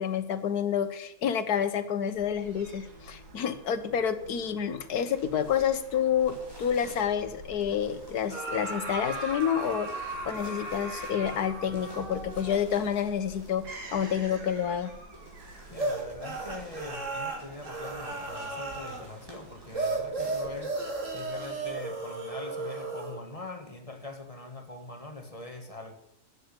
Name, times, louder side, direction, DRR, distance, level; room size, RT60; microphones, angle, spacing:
voice 1, 0.0-14.9, left 8 dB, 75° left, 1.7 m, -29 dB
Fowl / Gull seagull, 2.1-22.0, right 2 dB, 80° right, 2.7 m, -50 dB
sound 1, 5.1-21.1, right 1 dB, 15° right, 4.5 m, -53 dB
sound 2, 8.3-12.8 15.8-19.1 19.7-23.2, right 3 dB, 50° right, 2.7 m, -35 dB
voice 2, 15.7-20.7 21.1-25.9, left 2 dB, 20° left, 1.8 m, -42 dB
13.5 x 9.0 x 8.7 m
omnidirectional pair, 1.7 m